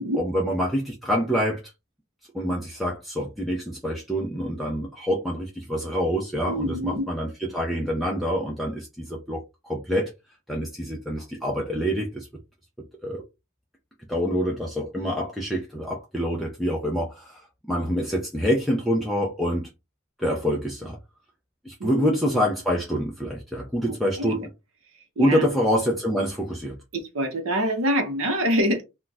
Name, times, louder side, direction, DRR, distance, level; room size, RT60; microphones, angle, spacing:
voice 1, 0.1-1.6 2.3-10.1 10.5-12.3 13.0-13.2 14.1-17.4 17.7-19.7 20.2-21.0 21.6-24.5 25.2-26.8, equal, ahead, 0.4 m, -26 dB
voice 2, 6.5-7.1 21.8-22.2 23.8-24.5 25.2-25.5 26.9-28.8, equal, 70° right, 0.8 m, -26 dB
2.3 x 2.2 x 3.9 m
head